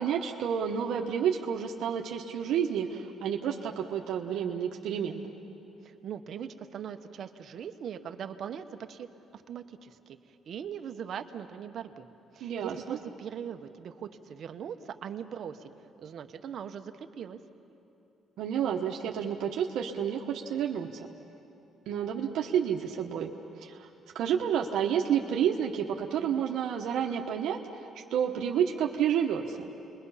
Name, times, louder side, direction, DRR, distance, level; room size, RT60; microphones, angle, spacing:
voice 1, 0.0-5.2 12.4-13.0 18.4-21.1 21.9-23.9 24.1-29.7, right 8 dB, 80° right, 0 dB, 1.1 m, -30 dB
voice 2, 5.8-9.1 9.3-10.2 10.5-12.1 12.3-15.7 16.0-17.4, right 8 dB, 55° right, 7 dB, 1.0 m, -40 dB
30.0 x 22.0 x 5.7 m, 2.9 s
cardioid pair, 135°, 0 cm